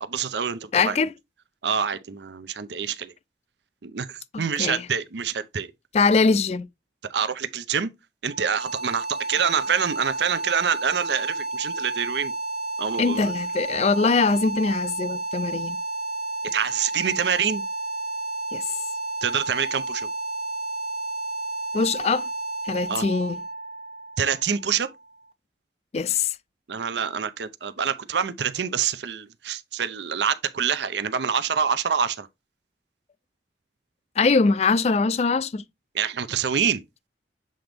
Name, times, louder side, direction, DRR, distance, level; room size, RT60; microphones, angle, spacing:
voice 1, 0.0-1.0 1.6-3.1 3.8-5.7 7.0-7.9 8.2-12.3 12.8-13.3 16.5-17.6 19.2-20.1 22.9-23.0 24.2-24.9 26.7-32.3 35.9-36.8, right 7 dB, 75° right, 0.6 m, -26 dB
voice 2, 0.7-1.1 4.3-4.9 5.9-6.7 13.0-15.8 18.5-18.7 21.7-22.3 22.6-23.4 25.9-26.4 34.2-35.6, left 4 dB, 35° left, 0.3 m, -22 dB
sound 1, 8.3-25.2, right 2 dB, 35° right, 0.8 m, -31 dB
7.6 x 3.8 x 3.4 m
head